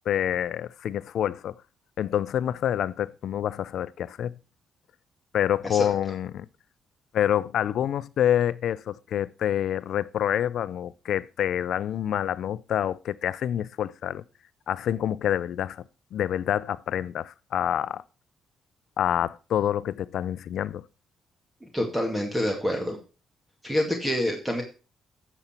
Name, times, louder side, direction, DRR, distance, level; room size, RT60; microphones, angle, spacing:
voice 1, 0.1-1.5 2.0-4.3 5.3-6.5 7.1-14.2 14.7-15.9 16.1-18.0 19.0-20.8, left 10 dB, 70° left, 0.5 m, -27 dB
voice 2, 21.7-23.0 23.6-24.6, equal, 10° right, 2.2 m, -27 dB
11.0 x 7.1 x 4.4 m
cardioid pair, 90°, 0 cm